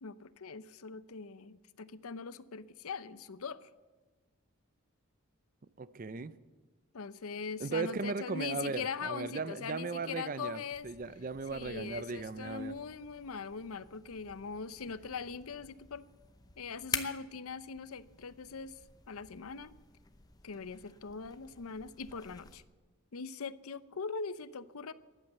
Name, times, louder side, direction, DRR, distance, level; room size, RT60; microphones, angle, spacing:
voice 1, 0.0-3.7 6.9-10.9 11.5-16.0 16.6-18.8 19.1-19.7 20.4-22.6 23.1-24.9, left 5 dB, 80° left, 15 dB, 0.6 m, -41 dB
voice 2, 5.8-6.3 7.6-12.7, right 4 dB, 40° right, 15 dB, 0.5 m, -37 dB
sound 1, 10.7-22.6, left 5 dB, 15° left, 0.7 m, -48 dB
14.0 x 11.0 x 7.9 m, 1.3 s
head